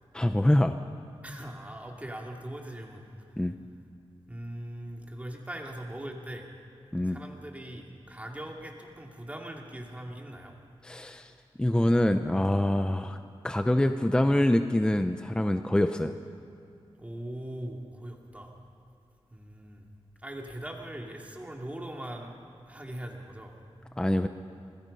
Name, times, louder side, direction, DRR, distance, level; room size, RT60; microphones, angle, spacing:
voice 1, 0.1-0.8 3.4-3.5 6.9-7.2 10.8-11.3 11.6-13.2 13.4-16.1 24.0-24.3, left 1 dB, 10° left, 7 dB, 0.7 m, -25 dB
voice 2, 1.2-3.3 4.3-6.5 7.0-10.5 17.0-18.5 19.3-19.9 20.2-22.3 22.7-23.5, right 1 dB, 15° right, 0 dB, 2.7 m, -40 dB
26.5 x 20.5 x 5.6 m, 2.7 s
wide cardioid pair, 135°, 10 cm